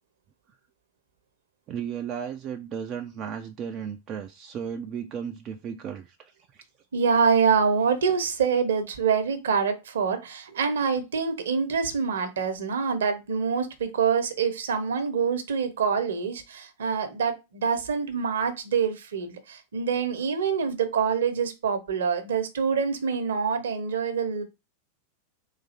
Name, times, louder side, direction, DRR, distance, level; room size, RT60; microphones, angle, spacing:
voice 1, 1.7-6.3, right 7 dB, 35° right, 0.4 m, -34 dB
voice 2, 6.9-24.4, right 6 dB, 65° right, 0.8 m, -25 dB
4.0 x 2.6 x 4.2 m
figure-of-eight pair, 90°, 0 cm